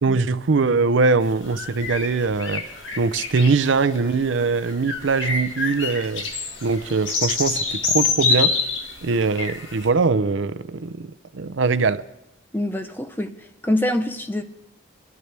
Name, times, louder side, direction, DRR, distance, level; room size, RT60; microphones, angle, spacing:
voice 1, 0.0-2.6 3.0-6.3 6.6-8.6 9.0-11.1 11.3-12.0, right 4 dB, 80° right, 0.5 m, -22 dB
sound 1, 1.3-9.9, left 4 dB, 80° left, 1.9 m, -27 dB
voice 2, 12.5-13.3 13.6-14.4, left 1 dB, 10° left, 0.7 m, -24 dB
24.0 x 12.5 x 3.4 m
head